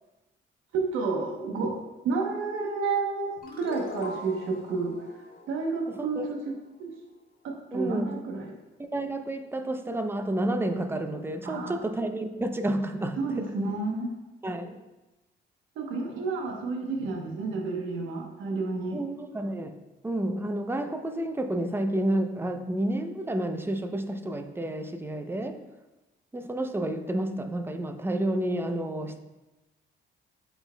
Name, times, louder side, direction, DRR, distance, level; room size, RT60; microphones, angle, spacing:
voice 1, 0.7-4.9 5.5-6.5 6.8-6.9 7.4-8.5 11.4-11.8 13.2-14.1 15.8-19.0, right 4 dB, 85° right, 0 dB, 1.0 m, -30 dB
sound 1, 3.4-6.6, left 2 dB, 50° left, 1.4 m, -42 dB
voice 2, 5.9-6.3 7.7-8.2 8.8-13.2 14.4-14.8 18.9-19.8 20.0-25.6 26.3-29.2, right 1 dB, 10° right, 7 dB, 0.6 m, -30 dB
11.0 x 4.5 x 2.2 m, 1.1 s
cardioid pair, 90°, 20 cm